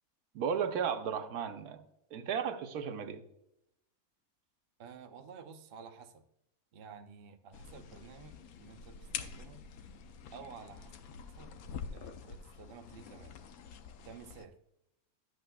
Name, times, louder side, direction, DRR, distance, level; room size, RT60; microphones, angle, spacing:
voice 1, 0.3-1.8 2.1-3.2, right 7 dB, 85° right, 7 dB, 1.2 m, -34 dB
voice 2, 4.8-6.2 6.7-9.6 10.3-10.9 11.4-11.5 11.9-13.4 14.0-14.6, right 6 dB, 50° right, 6 dB, 0.7 m, -52 dB
sound 1, 7.5-14.5, left 6 dB, 75° left, 1.1 m, -46 dB
10.5 x 7.9 x 2.2 m, 0.81 s
omnidirectional pair, 1.6 m